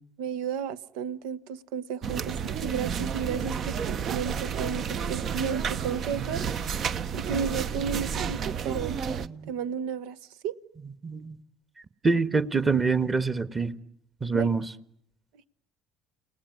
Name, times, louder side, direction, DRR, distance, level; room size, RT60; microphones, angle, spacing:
voice 1, 0.2-3.8 4.1-6.5 7.1-9.0 9.5-10.2 10.4-10.5 14.3-14.5, right 7 dB, 85° right, 1.1 m, -33 dB
Qantas Club Changi, 2.0-9.3, right 7 dB, 50° right, 1.0 m, -31 dB
voice 2, 11.0-11.4 12.0-13.7 14.2-14.6, right 4 dB, 25° right, 1.6 m, -25 dB
30.0 x 18.5 x 9.7 m
supercardioid pair, 95°, 0 cm